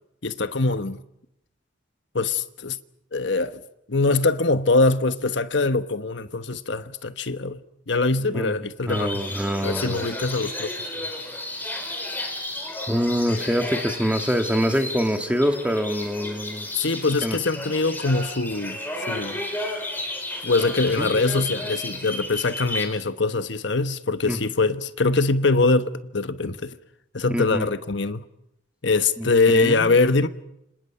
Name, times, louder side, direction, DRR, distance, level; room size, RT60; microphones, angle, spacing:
voice 1, 0.2-1.0 2.1-2.8 3.1-3.6 3.9-7.6 7.9-9.2 9.6-10.7 11.0-11.1 16.7-19.4 20.4-26.8 27.1-28.2 28.8-30.3, left 3 dB, 65° left, 1.2 m, -23 dB
voice 2, 8.2-8.6 8.8-10.1 12.9-16.7 17.2-17.4 21.0-21.1 24.2-24.4 27.3-27.7 29.2-29.3 29.5-29.9, equal, 5° right, 1.6 m, -25 dB
sound 1, 8.9-22.9, left 1 dB, 10° left, 4.5 m, -33 dB
30.0 x 26.5 x 5.8 m
head